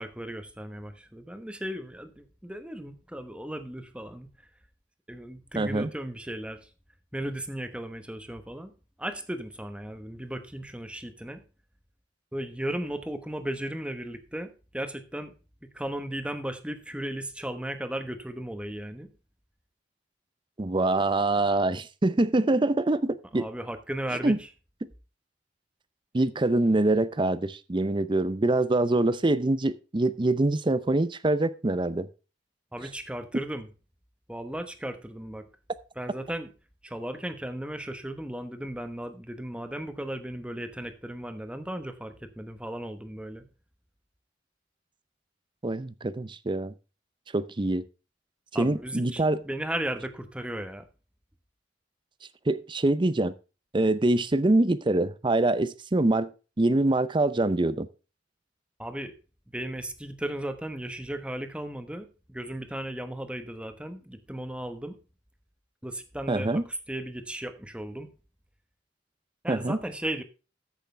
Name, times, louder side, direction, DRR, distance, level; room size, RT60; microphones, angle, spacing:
voice 1, 0.0-4.3 5.1-6.7 7.1-8.7 9.0-11.4 12.3-15.3 15.6-19.1 23.3-24.5 32.7-33.7 34.3-35.5 36.0-36.5 36.8-43.5 48.5-50.9 58.8-59.2 59.5-65.0 65.8-68.1 69.4-70.2, right 1 dB, 5° right, 1.0 m, -36 dB
voice 2, 5.6-5.9 20.6-23.5 24.2-24.4 26.1-32.1 45.6-46.7 47.3-47.8 48.6-49.4 52.5-53.3 53.7-56.3 56.6-57.9 66.3-66.6 69.5-69.8, right 2 dB, 25° right, 0.6 m, -24 dB
14.0 x 6.4 x 3.3 m
head